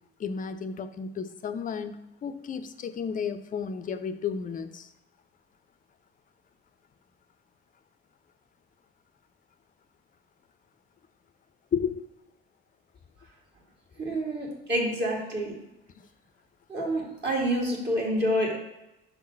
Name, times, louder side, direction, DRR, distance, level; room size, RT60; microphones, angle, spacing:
voice 1, 0.2-4.9 11.7-12.0 14.0-14.1, left 6 dB, 30° left, 11 dB, 0.5 m, -33 dB
voice 2, 14.0-15.5 16.7-18.6, equal, 35° right, -2 dB, 2.0 m, -28 dB
5.6 x 3.7 x 5.6 m, 0.94 s
figure-of-eight pair, 45°, 30 cm